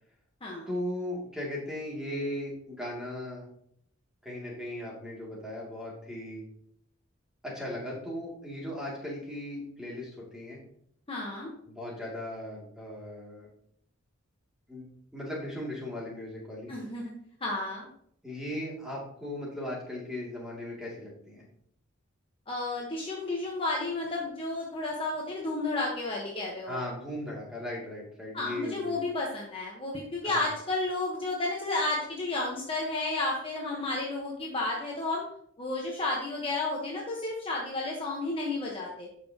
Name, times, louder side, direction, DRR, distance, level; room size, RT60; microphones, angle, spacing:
voice 1, 0.7-3.5 4.2-6.5 7.4-10.6 11.7-13.5 14.7-14.9 15.1-16.7 18.2-21.5 26.7-29.0 30.2-30.4, left 1 dB, 5° right, -4 dB, 2.5 m, -37 dB
voice 2, 11.1-11.5 16.7-17.1 17.4-17.9 22.5-26.8 28.3-35.2 35.6-39.1, left 2 dB, 25° left, -3 dB, 1.2 m, -32 dB
11.5 x 5.9 x 2.9 m, 0.68 s
head